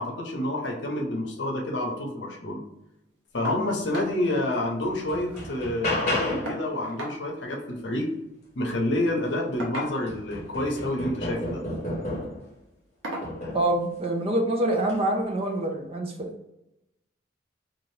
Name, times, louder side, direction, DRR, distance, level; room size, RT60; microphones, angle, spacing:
voice 1, 0.0-2.6 3.3-8.1 8.6-11.6, left 1 dB, 65° left, -1 dB, 0.7 m, -28 dB
sound 1, 3.4-3.7 3.9-4.2 4.5-4.6 4.9-5.6 6.5-7.2 8.4-8.6 9.6-10.3 11.3-11.6 12.1-12.3 13.0-13.4 14.6-14.7 15.2-15.3, right 1 dB, 75° right, 0.9 m, -37 dB
sound 2, 4.2-4.3 4.8-6.6 9.0-9.1 9.5-12.5 13.2-13.8 14.8-15.0, left 1 dB, 40° left, 0.9 m, -32 dB
voice 2, 13.5-16.3, right 1 dB, 30° right, 1 dB, 0.5 m, -26 dB
2.7 x 2.4 x 3.2 m, 0.89 s
head